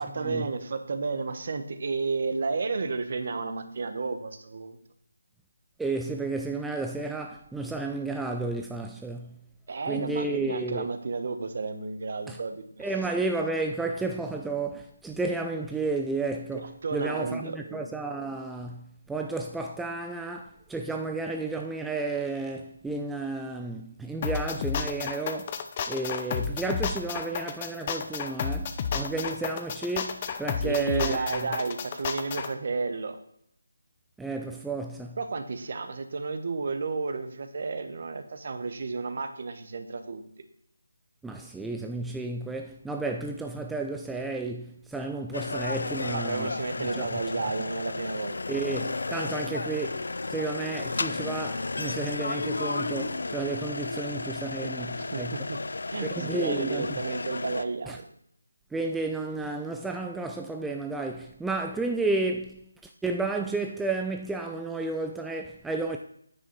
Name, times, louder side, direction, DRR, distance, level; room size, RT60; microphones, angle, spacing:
voice 1, 0.0-4.8 9.7-12.9 16.5-17.8 30.6-33.2 35.2-40.2 46.1-48.4 54.6-55.2 55.5-55.6 55.9-58.0, right 4 dB, 45° right, 1.1 m, -32 dB
voice 2, 5.8-9.4 9.9-10.9 12.3-12.4 12.8-25.5 25.9-31.6 34.2-35.2 41.2-47.1 48.5-55.4 56.0-57.0 57.9-58.0 58.7-62.6 63.0-66.0, right 3 dB, 5° right, 0.3 m, -32 dB
sound 1, 24.2-32.5, left 6 dB, 25° left, 0.6 m, -31 dB
sound 2, 45.3-57.6, left 3 dB, 70° left, 0.5 m, -33 dB
9.3 x 6.3 x 4.6 m
figure-of-eight pair, 165°, 0 cm